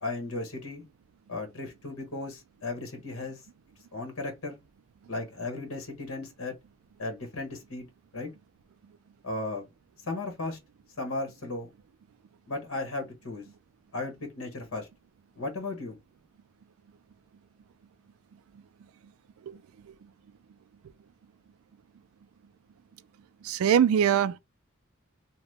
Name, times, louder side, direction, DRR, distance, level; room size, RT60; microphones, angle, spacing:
voice 1, 0.0-0.8 1.3-3.4 3.9-4.6 5.1-6.5 7.0-7.9 8.1-8.3 9.2-9.6 10.1-10.6 11.0-11.7 12.5-13.4 13.9-14.9 15.4-16.0, left 2 dB, 85° left, 1.1 m, -35 dB
voice 2, 19.4-20.1 23.4-24.4, right 8 dB, 85° right, 0.3 m, -25 dB
2.8 x 2.1 x 3.3 m
head